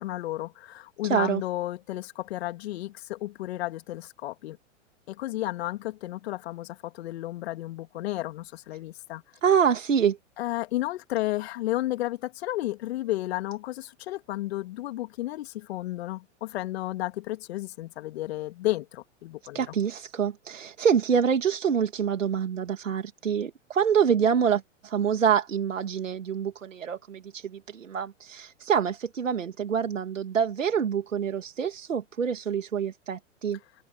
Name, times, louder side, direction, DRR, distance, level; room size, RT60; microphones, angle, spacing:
voice 1, 0.0-4.6 5.1-9.2 10.4-19.7, left 16 dB, 55° left, 2.6 m, -32 dB
voice 2, 1.0-1.4 9.4-10.2 19.5-33.6, right 7 dB, 80° right, 2.6 m, -26 dB
open air
hypercardioid pair, 115°, 38 cm